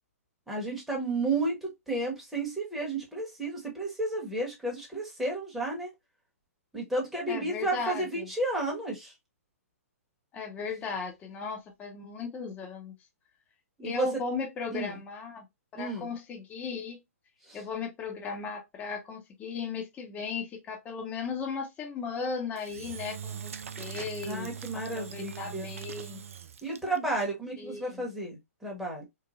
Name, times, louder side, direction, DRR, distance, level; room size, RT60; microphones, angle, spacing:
voice 1, 0.5-5.9 6.7-9.1 13.8-14.1 14.7-15.0 15.7-16.1 17.5-17.6 24.2-25.7 26.6-29.0, right 2 dB, ahead, 1.0 m, -32 dB
voice 2, 7.3-8.3 10.3-12.9 13.8-15.5 15.7-17.0 17.5-23.5 23.8-26.2 27.6-28.0, left 5 dB, 20° left, 0.7 m, -36 dB
Engine / Drill, 22.6-27.1, right 8 dB, 65° right, 0.4 m, -41 dB
3.1 x 2.1 x 2.4 m
figure-of-eight pair, 120°, 8 cm